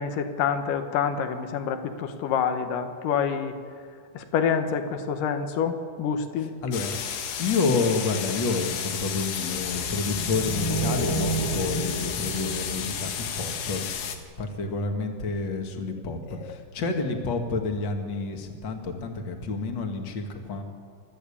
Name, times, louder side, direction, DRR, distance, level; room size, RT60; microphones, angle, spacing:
voice 1, 0.0-3.6 4.1-6.5 16.4-16.5, left 7 dB, 70° left, 7 dB, 2.9 m, -27 dB
voice 2, 6.6-6.9 7.4-13.9 14.4-20.6, left 3 dB, 40° left, 4 dB, 2.2 m, -29 dB
sound 1, 6.7-14.2, left 8 dB, 85° left, 3.4 m, -32 dB
sound 2, 9.5-14.0, right 1 dB, 15° left, 0.6 m, -31 dB
27.5 x 13.5 x 8.7 m, 2.1 s
omnidirectional pair, 4.1 m